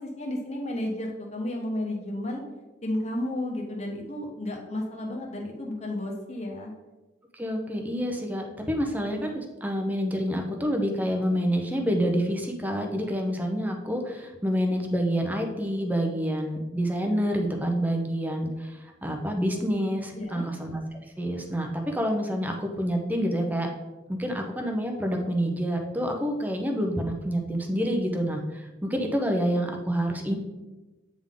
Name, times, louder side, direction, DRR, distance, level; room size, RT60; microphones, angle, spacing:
voice 1, 0.0-2.4 2.8-6.7 20.1-20.5, left 1 dB, 35° left, 0 dB, 1.2 m, -32 dB
voice 2, 7.3-20.8 21.2-23.7 24.1-30.4, equal, 10° right, 2 dB, 0.7 m, -28 dB
8.8 x 3.6 x 3.8 m, 1.1 s
head